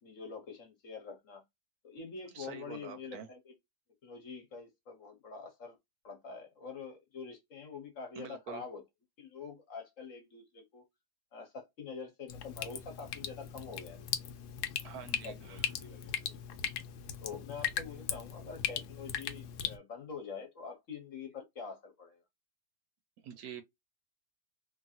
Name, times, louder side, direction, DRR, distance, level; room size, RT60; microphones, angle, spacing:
voice 1, 0.0-1.4 1.8-3.5 4.0-5.8 6.0-8.8 9.2-10.8 11.3-14.1 15.2-16.4 17.2-22.2, left 5 dB, 55° left, 1.1 m, -46 dB
voice 2, 2.3-3.3 8.2-8.6 14.8-15.7 16.0-16.1 23.2-23.6, right 8 dB, 70° right, 1.0 m, -46 dB
Drip, 12.3-19.8, left 9 dB, 75° left, 1.1 m, -38 dB
2.9 x 2.6 x 2.6 m
omnidirectional pair, 1.8 m